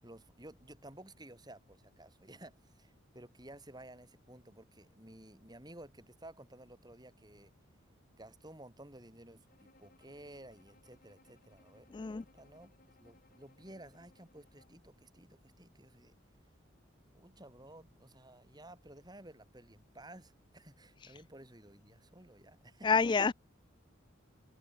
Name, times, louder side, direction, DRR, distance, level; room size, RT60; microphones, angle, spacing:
voice 1, 0.0-7.5 8.1-16.1 17.1-23.2, right 1 dB, 20° right, 7.2 m, -54 dB
Bowed string instrument, 9.5-14.9, left 2 dB, 45° left, 6.3 m, -67 dB
voice 2, 11.9-12.2 22.8-23.3, left 5 dB, 25° left, 0.3 m, -28 dB
head